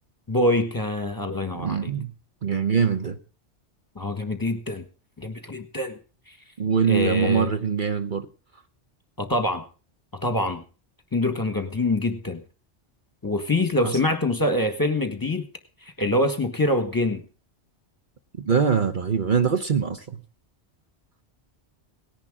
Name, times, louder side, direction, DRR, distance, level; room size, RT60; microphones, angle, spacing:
voice 1, 0.3-1.9 3.9-4.8 5.2-5.9 6.9-7.5 9.2-9.6 10.2-10.6 11.1-12.4 13.2-15.4 15.8-17.2, left 1 dB, 20° left, 1.5 m, -25 dB
voice 2, 1.5-2.1 2.4-3.2 6.6-8.3 13.8-14.0 18.4-20.2, right 6 dB, 50° right, 1.1 m, -23 dB
18.0 x 10.5 x 3.6 m
omnidirectional pair, 1.1 m